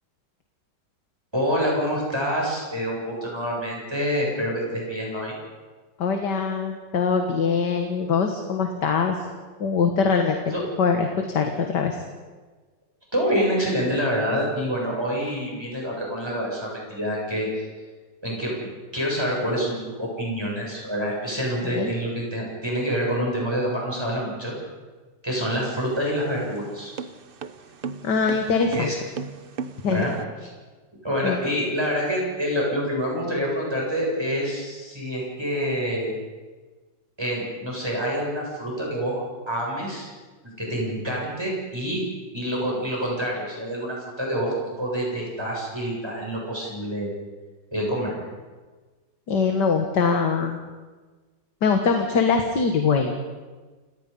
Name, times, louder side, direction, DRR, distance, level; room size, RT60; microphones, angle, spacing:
voice 1, 1.3-5.4 10.5-10.6 13.1-17.7 18.2-18.5 18.9-24.5 25.2-26.9 28.7-29.0 29.9-30.1 31.0-36.1 37.2-40.1 40.6-42.0 42.3-47.1 47.7-48.2, equal, 15° right, -3 dB, 7.5 m, -27 dB
voice 2, 6.0-9.2 9.6-12.0 21.6-21.9 28.0-28.9 29.8-30.1 31.2-31.4 49.3-50.6 51.6-53.1, left 5 dB, 70° left, 4 dB, 2.1 m, -23 dB
sound 1, 25.5-30.2, right 6 dB, 50° right, 0.7 m, -37 dB
29.0 x 18.5 x 5.5 m, 1.3 s
omnidirectional pair, 1.9 m